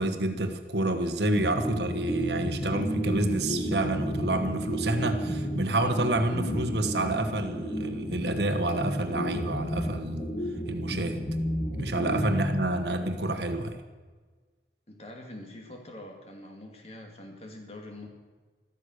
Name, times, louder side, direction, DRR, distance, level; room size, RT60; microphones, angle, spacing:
voice 1, 0.0-10.3 10.7-11.2 11.7-13.8, right 1 dB, 70° right, 7 dB, 1.5 m, -28 dB
sound 1, 1.3-13.2, equal, 20° left, 1.9 m, -32 dB
voice 2, 14.9-18.1, left 1 dB, 35° left, 2 dB, 2.4 m, -44 dB
14.0 x 13.5 x 6.6 m, 1.4 s
head